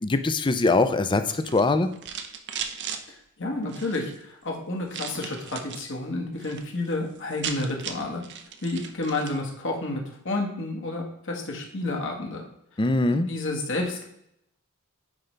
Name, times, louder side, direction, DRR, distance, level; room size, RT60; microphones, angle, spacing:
voice 1, 0.0-1.9 12.8-13.3, left 3 dB, 20° left, 10 dB, 0.5 m, -22 dB
sound 1, 1.2-3.0 3.6-4.2 4.9-5.9 6.2-6.6 6.9-7.0 7.2-9.4, right 7 dB, 55° right, 0.8 m, -37 dB
voice 2, 3.1-8.2 8.6-12.4 13.0-14.0, left 2 dB, 60° left, 1 dB, 1.7 m, -30 dB
9.6 x 5.2 x 3.4 m, 0.77 s
head